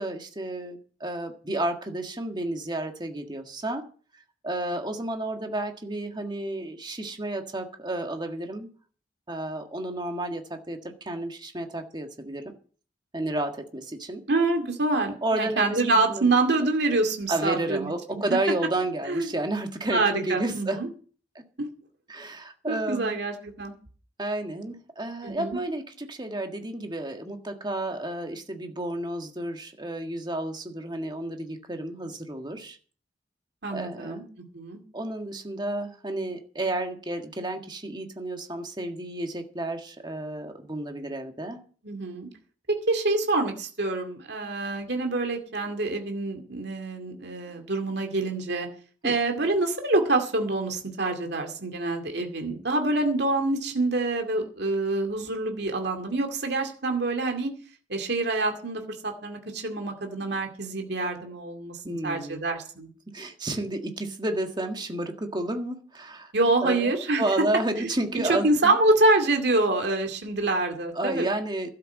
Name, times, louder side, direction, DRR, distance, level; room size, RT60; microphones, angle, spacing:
voice 1, 0.0-3.9 4.4-8.7 9.3-12.5 13.1-14.2 15.2-15.8 16.1-16.3 17.3-20.8 21.3-21.4 22.1-23.2 24.2-32.8 33.7-34.2 34.9-41.6 49.0-49.1 61.8-62.4 63.1-66.3 66.6-66.9 67.2-68.8 70.9-71.7, right 1 dB, 25° right, 5 dB, 1.7 m, -31 dB
voice 2, 14.3-18.4 19.1-19.3 19.9-20.9 21.6-21.7 22.7-23.7 25.2-25.6 33.6-34.8 41.8-42.3 42.7-48.7 49.0-57.5 57.9-62.9 66.3-67.2 68.3-71.3, right 2 dB, 60° right, 4 dB, 2.3 m, -26 dB
12.5 x 8.0 x 7.3 m, 0.42 s
head